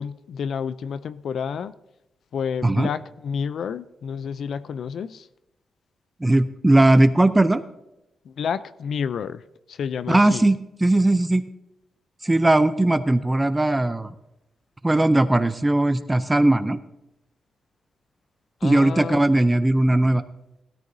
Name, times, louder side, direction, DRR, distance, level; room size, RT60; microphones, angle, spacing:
voice 1, 0.0-1.7 2.3-5.3 8.3-9.4 9.7-10.4 18.6-19.2, left 7 dB, 65° left, 15 dB, 0.4 m, -29 dB
voice 2, 6.2-7.6 10.1-11.4 12.2-14.1 14.8-16.8 18.6-20.2, right 1 dB, 10° right, 11 dB, 0.5 m, -19 dB
19.5 x 13.0 x 2.7 m, 0.90 s
wide cardioid pair, 145°, 0 cm